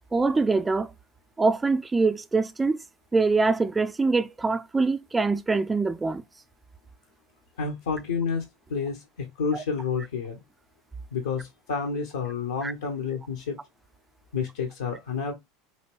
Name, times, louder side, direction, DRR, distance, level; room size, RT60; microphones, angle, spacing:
voice 1, 0.1-0.9 1.4-2.8 3.1-6.2 12.6-12.7, right 3 dB, 15° right, 0.3 m, -24 dB
voice 2, 7.6-8.4 8.7-10.4 11.1-13.6 14.3-15.3, left 5 dB, 75° left, 0.7 m, -29 dB
4.2 x 2.8 x 3.0 m
figure-of-eight pair, 75°, 0 cm